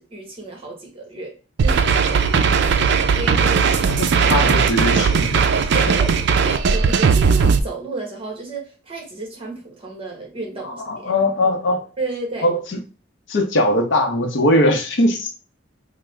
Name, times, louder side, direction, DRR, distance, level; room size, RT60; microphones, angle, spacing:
voice 1, 0.0-1.3 1.6-4.0 5.7-6.1 6.4-11.1 12.0-12.5, right 2 dB, 30° right, 0 dB, 1.1 m, -32 dB
sound 1, 1.6-7.6, right 5 dB, 60° right, 0.3 m, -17 dB
voice 2, 4.0-5.5 10.9-11.8 12.4-12.8 13.3-15.3, left 1 dB, 65° left, 4 dB, 0.6 m, -20 dB
3.5 x 2.0 x 3.2 m, 0.35 s
head